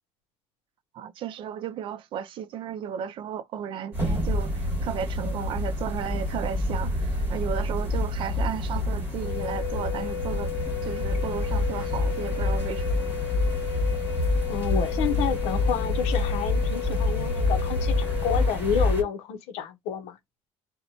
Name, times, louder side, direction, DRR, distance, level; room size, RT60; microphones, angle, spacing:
voice 1, 0.9-10.5 10.8-12.8, right 8 dB, 50° right, 0.4 m, -34 dB
sound 1, 3.9-19.0, left 1 dB, 20° right, 1.4 m, -27 dB
Wind instrument woodwind instrument, 9.2-18.5, left 17 dB, 30° left, 0.4 m, -35 dB
voice 2, 14.5-20.2, left 7 dB, 75° left, 0.6 m, -29 dB
2.8 x 2.1 x 2.7 m
cardioid pair, 130°, 11 cm